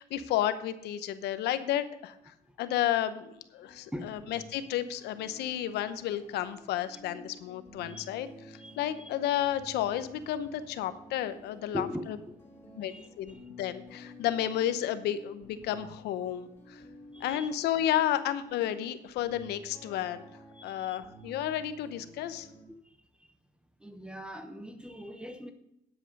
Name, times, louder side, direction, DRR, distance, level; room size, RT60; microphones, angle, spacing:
voice 1, 0.0-12.2 12.8-12.9 13.2-16.8 17.2-20.3 20.6-22.5, left 11 dB, 80° left, 12 dB, 0.8 m, -32 dB
sound 1, 3.6-22.6, equal, 15° left, 3.0 m, -52 dB
voice 2, 8.6-9.1 11.7-12.3 12.8-13.4 16.8-16.9 17.1-17.5 20.5-21.0 22.7-23.0 23.8-25.5, equal, 5° right, 8 dB, 1.0 m, -41 dB
10.0 x 8.0 x 5.3 m, 0.81 s
cardioid pair, 110°, 17 cm